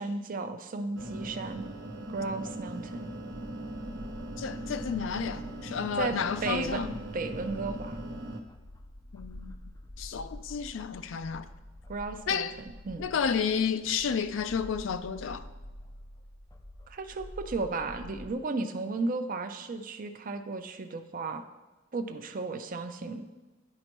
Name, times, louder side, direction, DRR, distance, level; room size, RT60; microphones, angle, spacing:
voice 1, 0.0-1.7 2.1-3.1 5.9-8.0 11.9-12.5 12.9-13.1 16.9-21.4 21.9-23.3, right 3 dB, 45° right, 0.5 m, -34 dB
sound 1, 0.9-8.4, right 1 dB, 85° right, 0.7 m, -40 dB
sound 2, 3.3-18.3, left 1 dB, 15° left, 0.3 m, -47 dB
voice 2, 4.4-6.9 9.1-9.5 10.0-11.5 12.3-12.5 13.0-15.5, left 6 dB, 85° left, 0.4 m, -31 dB
10.5 x 4.3 x 3.0 m
head